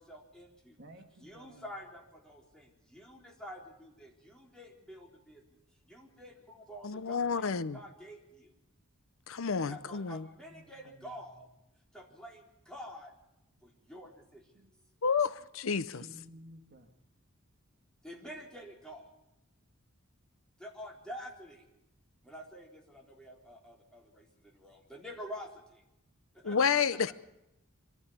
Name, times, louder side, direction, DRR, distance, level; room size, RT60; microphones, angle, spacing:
voice 1, 0.0-0.8 1.2-5.4 5.9-8.5 9.4-11.5 11.9-13.1 13.6-14.5 18.0-19.1 20.6-21.6 22.2-25.8 26.3-26.6, equal, 5° left, -1 dB, 3.9 m, -48 dB
voice 2, 0.8-1.6 10.3-11.1 14.5-14.7 15.8-16.9, equal, 50° right, 5 dB, 2.1 m, -54 dB
voice 3, 6.8-7.8 9.3-10.3 15.0-16.0 26.4-27.1, left 6 dB, 70° left, 15 dB, 0.6 m, -30 dB
25.5 x 12.0 x 9.6 m, 0.90 s
head